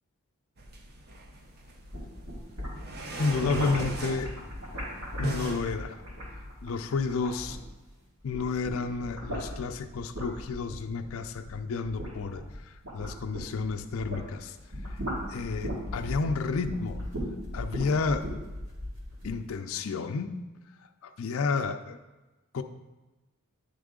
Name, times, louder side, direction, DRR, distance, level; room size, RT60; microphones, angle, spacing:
sound 1, 0.6-5.6, right 2 dB, 45° right, 0.6 m, -37 dB
sound 2, 1.7-7.9 8.2-14.3 14.6-19.4, equal, 85° right, 2.3 m, -38 dB
voice 1, 3.2-4.3 5.2-6.0 6.6-7.6 8.2-14.6 14.9-15.0 15.3-17.0 17.5-18.3 19.2-20.4 21.0-22.0 22.5-22.6, left 4 dB, 65° left, 7 dB, 0.4 m, -31 dB
9.7 x 3.5 x 3.7 m, 1.1 s
head